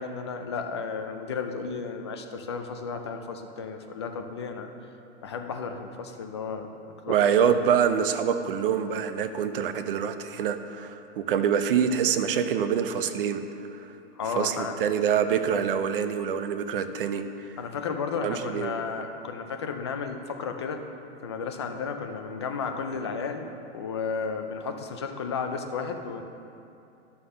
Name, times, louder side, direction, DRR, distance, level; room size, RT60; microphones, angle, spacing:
voice 1, 0.0-4.7 5.2-6.7 7.0-7.6 14.2-14.7 17.6-20.8 21.2-26.2, left 5 dB, 25° left, 5 dB, 0.3 m, -33 dB
voice 2, 7.1-13.4 13.7-13.9 14.4-17.2 18.2-18.7, right 8 dB, 50° right, 9 dB, 0.7 m, -25 dB
11.5 x 5.7 x 6.5 m, 2.7 s
hypercardioid pair, 165°, 35 cm